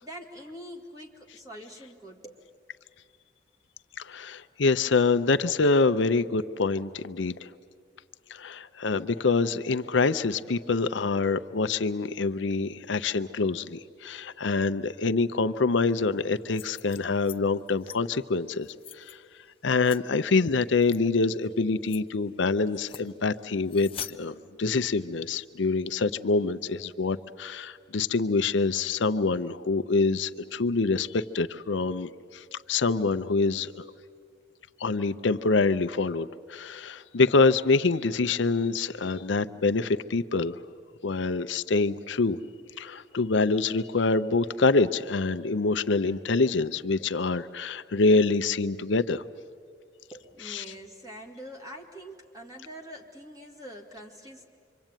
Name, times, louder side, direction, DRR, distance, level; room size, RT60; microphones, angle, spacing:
voice 1, 0.0-2.4 50.1-54.4, equal, 20° right, 1 dB, 2.4 m, -44 dB
voice 2, 4.0-7.5 8.3-18.7 18.9-19.2 19.6-33.8 34.8-40.6 41.0-42.4 42.8-49.2 50.4-50.6, left 3 dB, 75° left, 11 dB, 0.6 m, -26 dB
sound 1, 16.4-17.4 17.7-18.0 18.5-19.1 19.8-20.0 20.8-21.0 21.4-21.5 21.8-22.0 22.7-23.1 23.7-24.1, left 9 dB, 30° left, 0.7 m, -42 dB
26.5 x 24.5 x 9.0 m, 2.1 s
head